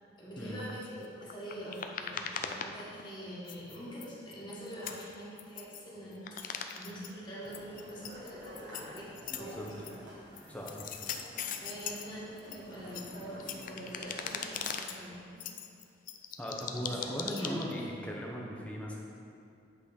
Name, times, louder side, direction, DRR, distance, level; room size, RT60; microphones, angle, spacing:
voice 1, 0.2-9.1 9.3-10.1 11.6-15.4 16.7-17.8, equal, 25° left, -7 dB, 1.5 m, -44 dB
sound 1, 0.6-3.2 3.5-5.8 6.1-7.1 7.5-10.0 10.4-12.1 12.4-15.0 15.4-17.8, left 7 dB, 45° left, 0.4 m, -40 dB
sound 2, 7.4-14.6, equal, 85° right, 1.4 m, -51 dB
voice 2, 9.3-9.7 10.5-10.9 16.4-19.0, equal, 5° left, -3 dB, 0.8 m, -38 dB
8.3 x 3.8 x 5.0 m, 2.5 s
head